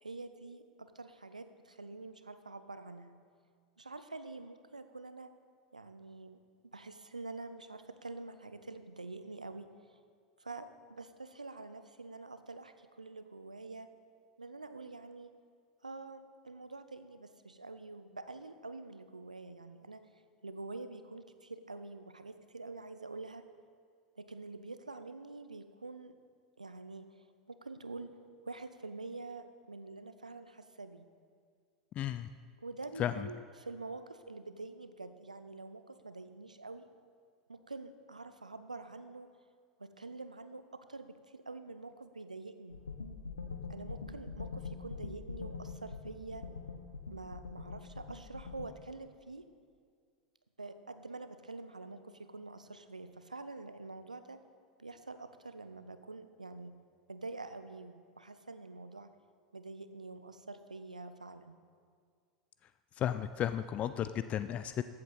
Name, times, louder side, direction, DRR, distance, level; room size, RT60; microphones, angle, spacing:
voice 1, 0.0-3.1 3.8-5.3 5.7-10.0 10.4-13.9 14.4-15.3 15.8-20.0 20.4-23.4 24.2-26.1 26.6-28.1 28.4-31.1 32.6-36.8 37.5-39.3 39.8-42.8 43.7-46.4 47.1-49.4 50.6-54.4 54.8-56.7 57.1-59.1 59.5-61.6, right 3 dB, 90° right, 10 dB, 0.5 m, -46 dB
voice 2, 31.9-32.3 33.0-33.3 63.0-64.8, left 10 dB, 35° left, 12 dB, 0.3 m, -34 dB
sound 1, 42.7-48.7, left 4 dB, 85° left, 0.8 m, -44 dB
14.0 x 7.7 x 4.1 m, 2.1 s
figure-of-eight pair, 85°, 4 cm